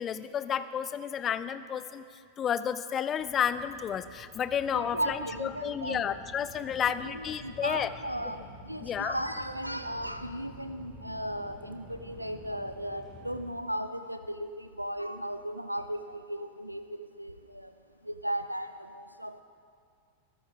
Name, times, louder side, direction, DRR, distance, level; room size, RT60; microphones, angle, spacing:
voice 1, 0.0-2.0 2.4-7.9 8.8-9.2, left 8 dB, 25° left, 13 dB, 0.6 m, -31 dB
sound 1, 3.2-13.5, equal, 5° right, 4.6 m, -50 dB
voice 2, 4.7-6.2 6.6-6.7 7.1-17.7 18.0-19.4, equal, 90° right, 10 dB, 0.5 m, -36 dB
21.5 x 13.5 x 3.3 m, 2.3 s
figure-of-eight pair, 90°, 0 cm